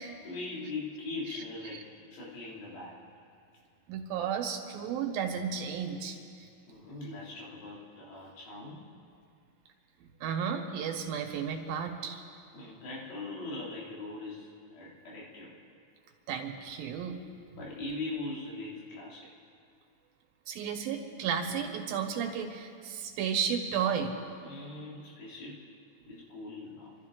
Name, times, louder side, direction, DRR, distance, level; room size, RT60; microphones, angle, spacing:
voice 1, 0.2-3.0 6.7-8.8 12.5-15.5 17.6-19.3 24.4-25.6 26.1-26.9, left 2 dB, 90° left, -5 dB, 4.8 m, -41 dB
voice 2, 3.9-6.5 10.0-12.2 16.3-17.2 20.5-24.1, right 7 dB, 85° right, 3 dB, 3.0 m, -33 dB
27.0 x 13.0 x 3.8 m, 2.3 s
omnidirectional pair, 4.2 m